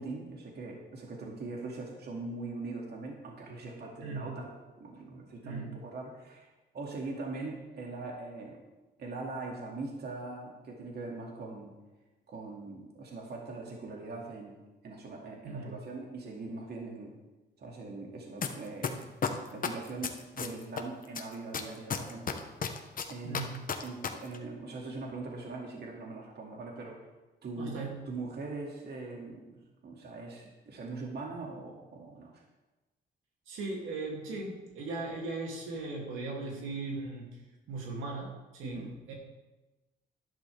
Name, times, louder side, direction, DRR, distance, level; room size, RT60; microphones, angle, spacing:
voice 1, 0.0-4.5 4.8-8.6 9.0-11.7 12.3-14.6 14.8-17.1 17.6-22.8 23.1-23.4 23.8-27.0 27.4-32.4 38.6-38.9, right 3 dB, 55° right, -1 dB, 2.4 m, -41 dB
voice 2, 5.4-5.7 15.4-15.7 23.2-23.6 27.6-28.0 33.5-37.3 37.7-39.1, right 3 dB, 85° right, -2 dB, 2.8 m, -38 dB
sound 1, 18.4-18.5 18.8-20.8 21.1-24.1 24.3-24.4, left 7 dB, 45° left, 1.2 m, -32 dB
12.5 x 11.5 x 3.5 m, 1.1 s
cardioid pair, 90°, 20 cm